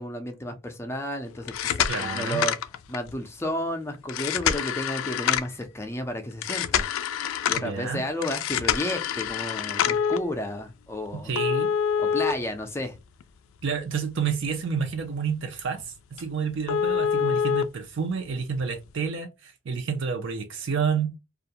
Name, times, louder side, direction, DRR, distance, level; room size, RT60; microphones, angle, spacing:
voice 1, 0.0-2.6 2.9-6.9 7.5-11.3 12.0-12.9, left 1 dB, 15° left, 0.4 m, -32 dB
sound 1, 1.4-3.1 4.1-5.6 6.4-7.7 8.2-10.2 11.4-13.2 13.6-13.7 14.3-14.4 14.8-15.0 15.3-15.4 15.8-15.9 16.2-16.3 16.7-17.6 18.7-18.8, left 8 dB, 90° left, 0.3 m, -26 dB
voice 2, 1.9-2.4 7.6-8.0 11.2-11.7 13.6-15.9 16.2-21.1, right 6 dB, 65° right, 0.4 m, -29 dB
2.4 x 2.1 x 2.7 m
head